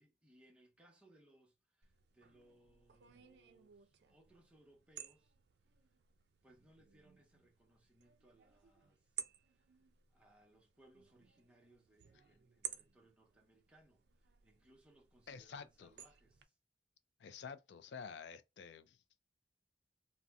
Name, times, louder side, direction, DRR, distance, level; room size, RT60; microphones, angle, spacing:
voice 1, 0.0-5.3 6.4-9.8 10.1-16.6, right 1 dB, 5° right, 0.7 m, -68 dB
sound 1, 1.8-16.4, right 9 dB, 70° right, 0.4 m, -54 dB
voice 2, 15.3-15.9 17.2-19.0, left 6 dB, 80° left, 0.4 m, -50 dB
2.6 x 2.1 x 3.4 m
head